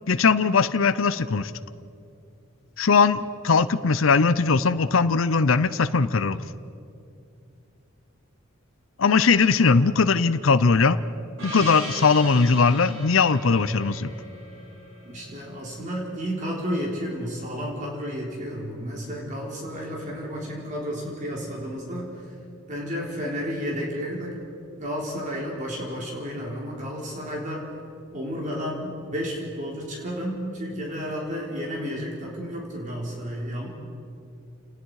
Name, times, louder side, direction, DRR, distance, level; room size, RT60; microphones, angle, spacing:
voice 1, 0.1-1.5 2.8-6.4 9.0-11.0 11.4-14.1, left 4 dB, 70° left, 13 dB, 0.7 m, -20 dB
Gong, 11.4-16.1, right 1 dB, 70° right, 6.0 m, -39 dB
voice 2, 15.0-22.1 22.7-24.4 24.8-27.6 28.1-33.7, equal, 40° right, -3 dB, 3.8 m, -32 dB
29.5 x 19.5 x 4.8 m, 2.5 s
head